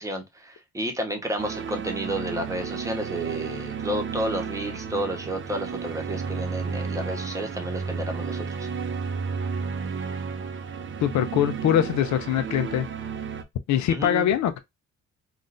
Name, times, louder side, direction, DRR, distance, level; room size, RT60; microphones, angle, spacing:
voice 1, 0.0-8.7 13.9-14.3, right 1 dB, 10° right, 1.0 m, -31 dB
sound 1, 1.4-13.4, right 5 dB, 40° right, 0.6 m, -32 dB
voice 2, 11.0-12.9 13.7-14.6, left 10 dB, 65° left, 0.5 m, -23 dB
3.7 x 2.4 x 2.5 m
cardioid pair, 90°, 30 cm